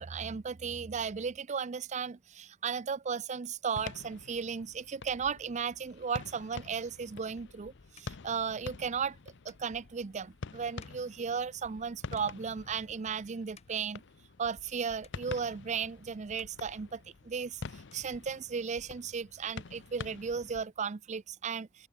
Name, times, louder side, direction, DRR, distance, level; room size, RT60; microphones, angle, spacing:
voice 1, 0.0-9.2 9.4-14.0 14.4-21.9, right 6 dB, 35° right, 0.5 m, -35 dB
sound 1, 3.8-20.7, left 4 dB, 55° left, 0.7 m, -47 dB
sound 2, 10.8-11.9 12.1-12.8 13.3-14.8 15.0-15.9 16.2-17.4 17.7-18.8, left 6 dB, 30° left, 4.8 m, -65 dB
open air
head